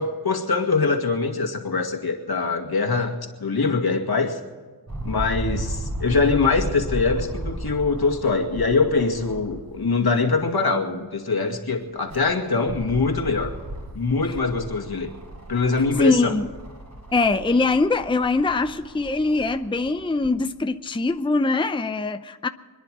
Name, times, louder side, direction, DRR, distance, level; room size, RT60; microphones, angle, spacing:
voice 1, 0.0-4.4 5.0-13.5 13.9-15.1 15.5-16.3, left 4 dB, 70° left, 4 dB, 2.2 m, -23 dB
sound 1, 4.9-9.9 10.4-10.5 11.8-20.4 21.1-21.2, right 1 dB, 40° right, 4.5 m, -35 dB
voice 2, 15.9-16.5 17.1-22.5, left 3 dB, 15° left, 9 dB, 0.6 m, -22 dB
26.5 x 10.5 x 4.9 m, 1.4 s
wide cardioid pair, 65°, 39 cm